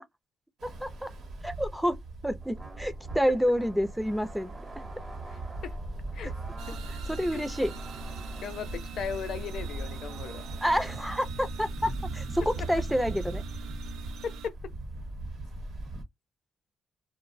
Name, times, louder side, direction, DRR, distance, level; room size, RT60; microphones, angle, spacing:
voice 1, 0.6-1.1 1.4-2.0 2.2-4.5 6.2-6.3 7.1-7.7 10.6-13.4, equal, 5° right, 0.4 m, -28 dB
Ocean, 0.6-16.0, right 2 dB, 70° right, 0.9 m, -39 dB
sound 1, 2.4-10.9, right 3 dB, 25° right, 0.7 m, -50 dB
sound 2, 6.6-14.5, right 9 dB, 85° right, 0.4 m, -46 dB
voice 2, 8.4-10.5 14.2-14.5, left 7 dB, 70° left, 0.5 m, -37 dB
2.5 x 2.0 x 2.5 m
cardioid pair, 90°, 0 cm